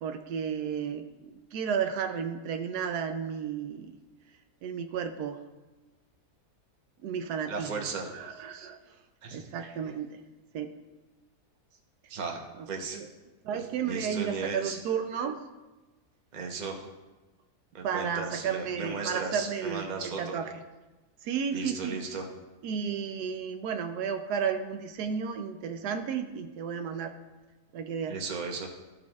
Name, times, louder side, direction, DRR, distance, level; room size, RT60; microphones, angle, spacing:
voice 1, 0.0-3.9 4.6-5.4 7.0-7.9 8.1-8.8 9.3-10.1 10.5-10.7 12.6-12.7 12.9-13.1 13.4-15.4 17.8-20.6 21.2-22.0 22.6-27.2 27.7-28.2, right 7 dB, 80° right, 7 dB, 1.1 m, -33 dB
voice 2, 7.5-8.1 9.2-9.7 12.1-12.4 12.7-13.0 13.5-14.8 16.3-16.9 17.7-20.4 21.5-22.2 28.1-28.7, right 4 dB, 35° right, 1 dB, 0.8 m, -36 dB
14.5 x 5.1 x 2.3 m, 1.2 s
omnidirectional pair, 1.7 m